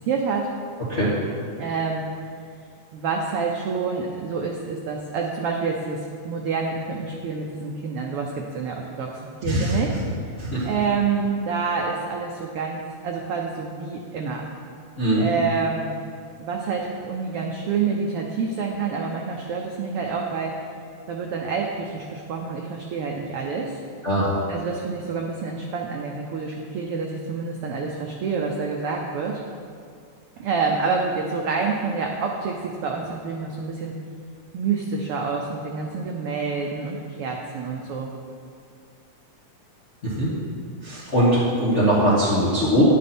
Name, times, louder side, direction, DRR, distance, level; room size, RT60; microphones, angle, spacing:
voice 1, 0.1-0.5 1.6-2.1 2.9-6.0 6.2-9.9 10.6-14.4 15.2-15.9 16.4-20.6 21.1-23.8 24.5-29.4 30.4-33.9 34.5-38.1, right 5 dB, 90° right, 1 dB, 1.2 m, -27 dB
voice 2, 9.4-9.8 10.4-10.7 15.0-15.3 24.0-24.3 40.0-40.3 40.8-42.8, equal, 35° left, -8 dB, 1.3 m, -21 dB
10.5 x 8.5 x 4.3 m, 2.2 s
omnidirectional pair, 3.5 m